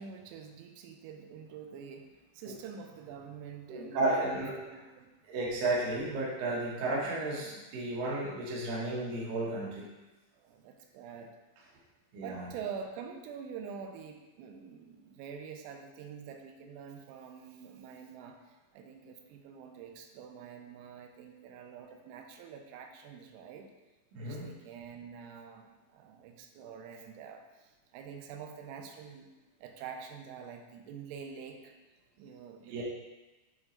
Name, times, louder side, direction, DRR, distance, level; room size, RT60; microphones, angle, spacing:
voice 1, 0.0-4.5 4.7-5.1 10.4-11.3 12.2-23.7 24.2-29.3 29.6-31.7 32.2-32.8, right 6 dB, 90° right, 4 dB, 3.3 m, -46 dB
voice 2, 3.7-4.6 5.2-9.8 12.1-12.5 24.1-24.5 32.7-32.8, right 2 dB, 70° right, -5 dB, 2.2 m, -33 dB
9.6 x 3.7 x 3.2 m, 1.1 s
omnidirectional pair, 5.9 m